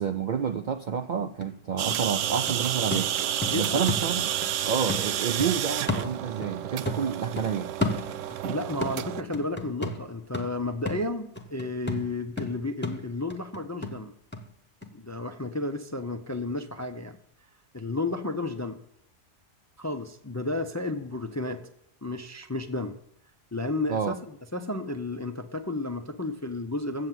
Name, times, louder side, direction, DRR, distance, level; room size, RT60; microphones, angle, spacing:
voice 1, 0.0-3.1 3.5-4.3 4.6-7.7 23.9-24.2, right 7 dB, 65° right, 7 dB, 0.4 m, -29 dB
sound 1, 0.9-1.0 1.4-4.6 4.9-6.6 6.8-8.5 8.8-14.5 14.8-14.9, left 2 dB, 10° left, 0.8 m, -34 dB
sound 2, 1.8-9.2, right 11 dB, 85° right, 0.9 m, -30 dB
voice 2, 3.4-3.8 8.4-14.1 14.9-17.2 17.7-18.8 19.8-21.7 22.0-22.9 23.5-27.1, left 2 dB, 25° left, 7 dB, 0.3 m, -32 dB
7.9 x 7.7 x 7.4 m, 0.73 s
omnidirectional pair, 1.3 m